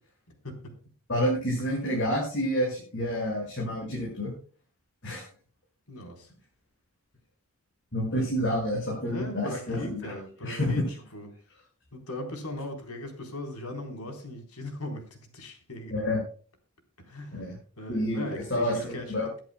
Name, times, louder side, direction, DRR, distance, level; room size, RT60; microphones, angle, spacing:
voice 1, 0.3-0.8 5.9-6.3 8.7-11.3 11.9-15.9 17.0-19.1, left 1 dB, 85° left, 4 dB, 3.9 m, -39 dB
voice 2, 1.1-4.3 5.0-5.3 7.9-10.1 10.4-10.9 15.9-16.2 17.3-17.5 17.9-19.3, equal, 55° left, -3 dB, 5.9 m, -29 dB
22.5 x 10.5 x 2.2 m, 0.42 s
head